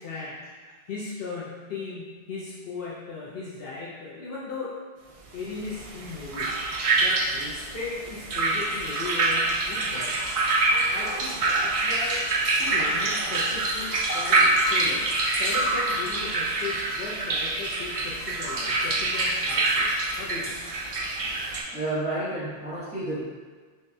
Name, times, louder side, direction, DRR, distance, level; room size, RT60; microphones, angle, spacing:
voice 1, 0.0-4.8 5.3-6.6 7.0-10.2 10.7-12.3 12.6-15.1 15.4-19.9 20.2-20.6, left 4 dB, 65° left, -7 dB, 0.8 m, -37 dB
sound 1, 5.7-21.6, right 2 dB, 65° right, 0.3 m, -26 dB
voice 2, 21.7-23.2, right 1 dB, 5° right, -11 dB, 0.8 m, -30 dB
5.2 x 2.2 x 2.6 m, 1.5 s
omnidirectional pair, 1.1 m